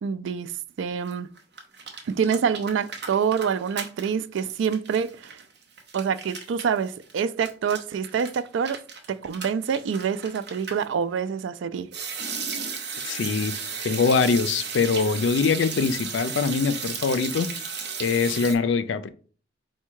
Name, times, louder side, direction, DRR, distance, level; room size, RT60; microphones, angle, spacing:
voice 1, 0.0-1.3 2.1-5.4 5.9-8.8 9.1-11.9, right 7 dB, 80° right, 0.3 m, -26 dB
sound 1, 1.0-1.1 1.4-4.1 4.4-10.8 11.9-18.5, right 5 dB, 65° right, 0.7 m, -35 dB
voice 2, 13.0-13.5 13.8-17.5 18.0-19.1, left 5 dB, 75° left, 0.4 m, -23 dB
4.4 x 2.2 x 4.6 m
head